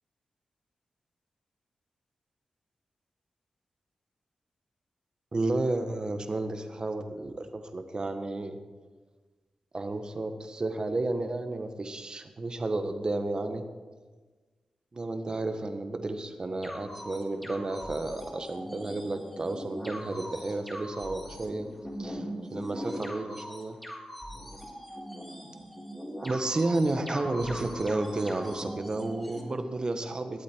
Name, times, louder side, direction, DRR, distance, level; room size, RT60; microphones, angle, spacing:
voice 1, 5.3-8.6 9.7-13.6 14.9-21.7 22.0-23.8 26.2-30.4, right 2 dB, 40° right, 7 dB, 1.4 m, -32 dB
sound 1, 16.6-29.4, equal, 5° left, 3.8 m, -40 dB
20.5 x 8.3 x 4.6 m, 1.3 s
cardioid pair, 60°, 2 cm